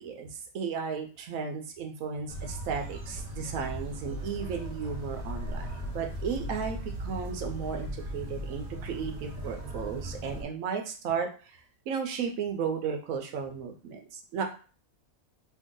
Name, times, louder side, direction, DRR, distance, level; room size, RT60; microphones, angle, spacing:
voice 1, 0.0-11.6 11.9-14.4, right 6 dB, 80° right, 4 dB, 1.1 m, -34 dB
sound 1, 2.3-10.4, right 1 dB, 35° right, 0.8 m, -37 dB
2.9 x 2.6 x 3.7 m, 0.38 s
omnidirectional pair, 1.4 m